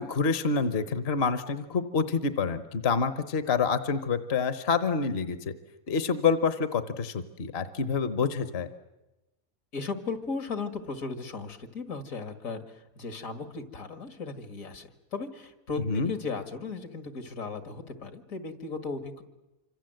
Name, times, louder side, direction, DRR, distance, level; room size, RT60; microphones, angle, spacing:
voice 1, 0.0-5.5 5.9-8.7 15.9-16.1, left 5 dB, 50° left, 12 dB, 1.3 m, -27 dB
voice 2, 9.7-19.2, left 4 dB, 75° left, 9 dB, 2.4 m, -36 dB
27.0 x 25.5 x 7.8 m, 1.0 s
omnidirectional pair, 1.5 m